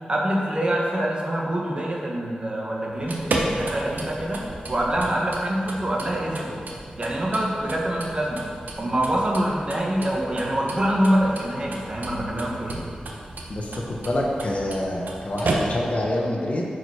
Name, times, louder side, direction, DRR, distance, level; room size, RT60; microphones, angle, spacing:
voice 1, 0.1-4.4 4.7-6.5 7.0-8.4 8.8-12.8, right 1 dB, 35° right, -2 dB, 1.3 m, -25 dB
sound 1, 2.9-16.1, right 2 dB, 85° right, 1.0 m, -33 dB
voice 2, 13.5-16.7, left 1 dB, 50° left, -2 dB, 1.1 m, -27 dB
8.9 x 5.0 x 4.9 m, 2.3 s
wide cardioid pair, 100°, 3 cm